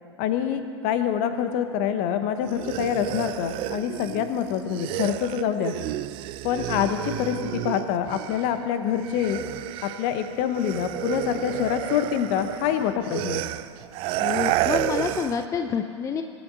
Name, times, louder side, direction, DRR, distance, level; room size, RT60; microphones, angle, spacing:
voice 1, 0.2-5.7 6.4-9.4 9.8-13.4, left 9 dB, 45° left, 9 dB, 1.0 m, -26 dB
sound 1, 2.4-8.7 8.9-15.5, right 15 dB, 35° right, 0.4 m, -31 dB
voice 2, 14.2-16.2, left 6 dB, 20° left, 6 dB, 0.6 m, -28 dB
20.5 x 8.0 x 3.9 m, 2.4 s
hypercardioid pair, 100°, 15 cm